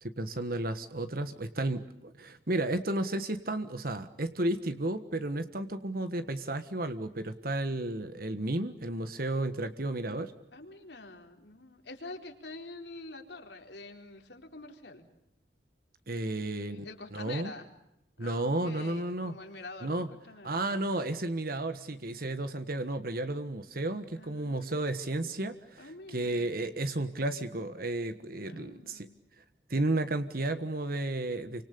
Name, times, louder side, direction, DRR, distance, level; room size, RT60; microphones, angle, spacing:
voice 1, 0.0-10.3 16.1-17.5 18.2-19.3 19.8-20.1 20.4-29.1 29.4-29.5 29.7-31.6, right 2 dB, 55° right, 9 dB, 1.4 m, -33 dB
voice 2, 10.5-15.1 16.2-17.7 18.2-20.7 24.1-24.8 25.8-26.7 28.4-29.1, left 2 dB, 75° left, 3 dB, 4.3 m, -47 dB
29.5 x 25.5 x 6.9 m, 0.84 s
head